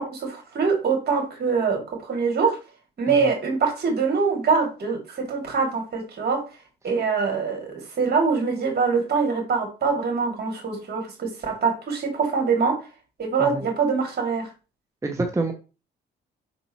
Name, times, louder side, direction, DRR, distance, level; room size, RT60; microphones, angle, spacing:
voice 1, 0.0-2.6 3.0-6.4 6.8-12.8 13.2-14.5, right 5 dB, 55° right, 3 dB, 2.5 m, -24 dB
voice 2, 15.0-15.5, right 3 dB, 15° right, 3 dB, 0.9 m, -26 dB
5.5 x 4.3 x 4.4 m, 0.32 s
cardioid pair, 90°, 20 cm